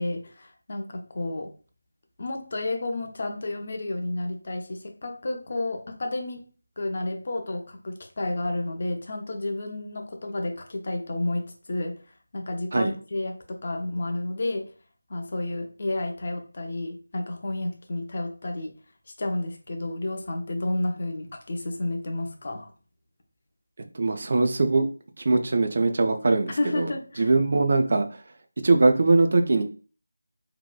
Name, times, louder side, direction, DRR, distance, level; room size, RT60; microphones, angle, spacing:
voice 1, 0.0-1.5 2.2-6.5 6.8-12.0 12.3-14.7 15.1-18.8 19.2-22.7 26.6-27.3, left 2 dB, 40° left, 4 dB, 0.4 m, -31 dB
voice 2, 23.9-24.9 25.2-28.2 28.6-29.6, right 3 dB, 40° right, 6 dB, 0.3 m, -22 dB
2.7 x 2.1 x 2.2 m, 0.37 s
figure-of-eight pair, 165°, 0 cm